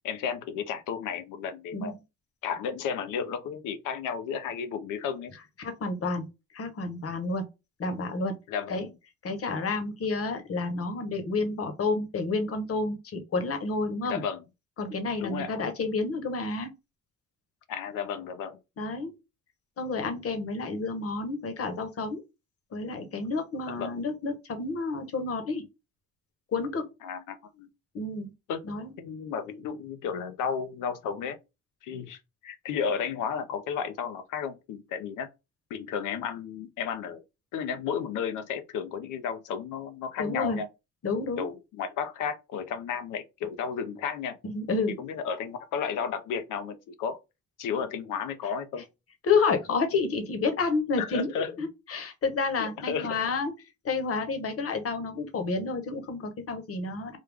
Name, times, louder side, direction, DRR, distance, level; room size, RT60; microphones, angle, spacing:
voice 1, 0.0-1.9 2.4-5.3 8.5-8.9 14.0-14.4 15.2-15.5 17.7-18.6 23.7-23.9 27.0-27.7 28.5-28.7 29.0-31.4 31.8-35.3 35.7-37.2 37.5-40.7 41.4-44.4 44.9-47.2 47.6-48.8 51.0-51.5 52.6-53.2, left 7 dB, 85° left, 0.7 m, -33 dB
voice 2, 5.6-6.2 6.5-7.4 7.8-8.3 8.7-8.9 9.2-14.2 14.8-16.7 18.8-19.1 19.8-22.2 22.7-25.6 26.5-26.9 27.9-28.3 28.6-28.9 40.2-40.6 41.0-41.4 44.4-44.9 49.2-51.3 51.6-53.5 53.8-57.2, left 3 dB, 50° left, 1.1 m, -30 dB
3.6 x 2.2 x 3.4 m
cardioid pair, 90°, 30 cm